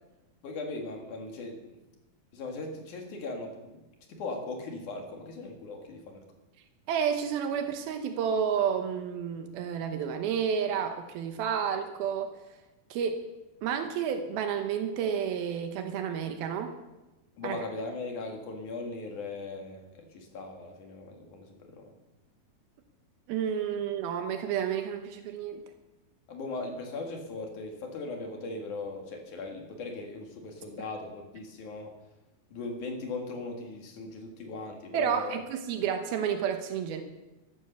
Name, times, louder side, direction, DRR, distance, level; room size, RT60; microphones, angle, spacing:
voice 1, 0.4-1.6 2.3-3.8 4.1-6.2 17.4-21.9 26.3-31.9 32.5-35.4 35.7-35.8, left 3 dB, 60° left, 2 dB, 3.2 m, -39 dB
voice 2, 6.9-12.3 12.9-13.3 13.6-16.8 17.4-17.6 23.3-25.6 34.9-37.0, right 7 dB, 80° right, 6 dB, 2.8 m, -30 dB
14.0 x 11.0 x 6.7 m, 1.0 s
omnidirectional pair, 4.3 m